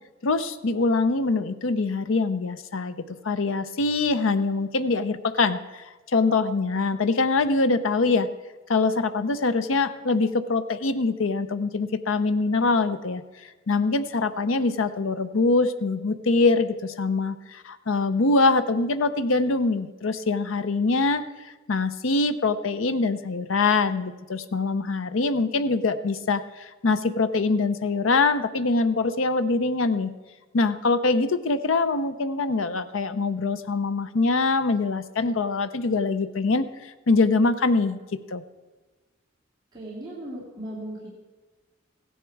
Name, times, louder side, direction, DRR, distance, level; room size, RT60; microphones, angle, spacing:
voice 1, 0.2-2.9 3.2-5.8 6.1-8.3 8.7-13.2 13.7-21.2 21.7-30.1 30.5-38.0 38.3-38.4, left 3 dB, 80° left, 12 dB, 0.6 m, -24 dB
voice 2, 39.7-41.1, right 1 dB, 20° right, -8 dB, 2.5 m, -37 dB
15.5 x 10.0 x 4.7 m, 1.3 s
head